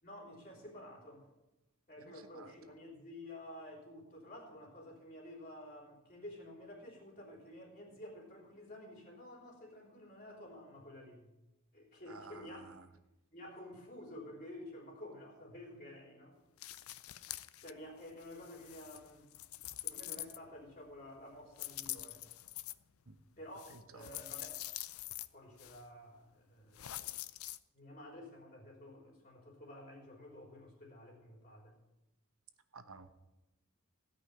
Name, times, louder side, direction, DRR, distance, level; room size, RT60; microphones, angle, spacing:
voice 1, 0.0-1.3 1.9-11.3 11.7-12.7 13.3-16.4 17.6-19.3 19.8-22.2 23.4-24.6 25.3-27.0 27.7-31.8, left 1 dB, 40° left, -4 dB, 3.8 m, -51 dB
voice 2, 2.0-2.5 12.1-12.9 23.1-23.2 23.7-24.1 32.7-33.1, right 4 dB, 75° right, 9 dB, 1.1 m, -53 dB
sound 1, 16.6-17.7 18.0-20.7 21.5-22.7 23.6-25.3 25.6-25.8 26.7-27.6, left 15 dB, 80° left, 0.5 m, -45 dB
16.5 x 5.6 x 9.9 m, 1.0 s
head